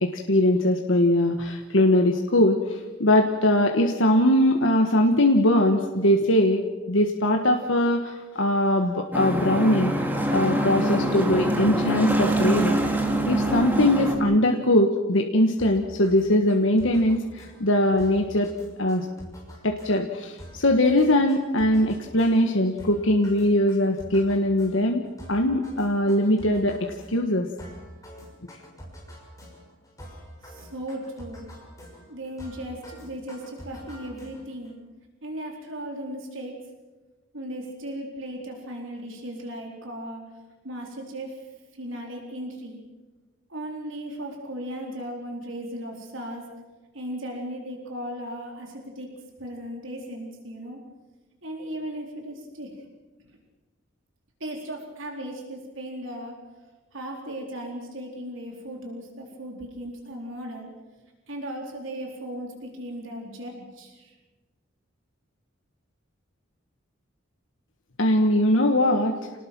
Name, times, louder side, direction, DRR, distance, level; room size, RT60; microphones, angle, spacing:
voice 1, 0.0-9.9 10.3-13.0 13.3-18.5 18.8-19.0 19.6-27.5 68.0-69.2, left 1 dB, 65° left, 3 dB, 1.5 m, -21 dB
sound 1, 9.1-14.2, right 1 dB, 10° right, 2.5 m, -24 dB
sound 2, 15.6-34.7, equal, 15° left, 6.4 m, -46 dB
voice 2, 30.4-31.5 32.1-34.8 35.2-36.6 37.3-40.2 40.6-41.4 41.7-42.8 43.5-46.5 46.9-49.1 49.4-50.8 51.4-52.8 53.2-53.4 54.4-56.4 56.9-60.7 61.3-64.1, right 1 dB, 70° right, 0 dB, 4.3 m, -36 dB
28.0 x 19.0 x 6.2 m, 1.2 s
head